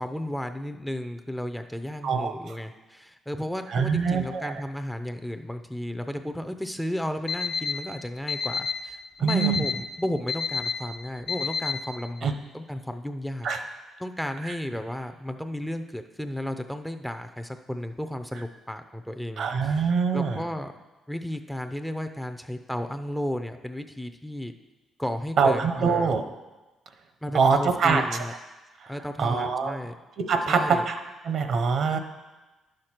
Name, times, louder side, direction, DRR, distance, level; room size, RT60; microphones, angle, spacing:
voice 1, 0.0-13.5 14.0-20.7 21.1-24.5 25.0-26.2 27.2-28.3 28.9-30.0 30.5-30.8 31.9-32.0, left 1 dB, ahead, 7 dB, 0.5 m, -33 dB
voice 2, 3.7-4.5 9.2-9.6 12.2-12.3 13.4-13.6 14.4-14.5 19.4-20.4 25.4-26.2 27.3-28.0 28.8-29.8 30.2-32.0, right 5 dB, 65° right, 7 dB, 0.9 m, -24 dB
Alarm, 7.3-7.7 8.3-8.7 9.3-9.7 10.3-10.7 11.3-11.7, left 6 dB, 70° left, 1.2 m, -27 dB
10.5 x 6.5 x 4.4 m, 1.1 s
cardioid pair, 90°, 0 cm